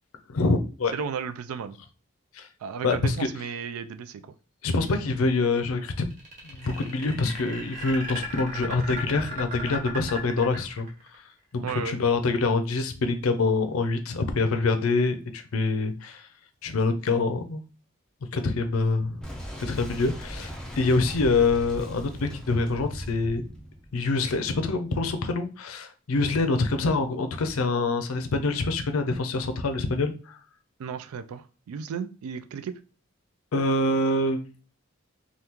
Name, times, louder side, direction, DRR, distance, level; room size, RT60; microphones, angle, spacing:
voice 1, 0.3-0.9 2.3-2.5 2.8-3.3 4.6-6.1 6.4-11.2 11.5-16.3 16.6-17.6 18.3-19.2 19.6-23.5 23.9-30.4 33.5-34.4, left 3 dB, 80° left, 0.5 m, -25 dB
voice 2, 0.9-1.8 2.6-4.2 11.6-12.0 30.8-32.8, right 6 dB, 90° right, 0.3 m, -34 dB
sound 1, 6.1-11.2, equal, 35° right, 0.8 m, -36 dB
Boom, 19.2-24.8, equal, 5° left, 0.4 m, -39 dB
2.9 x 2.3 x 3.5 m
head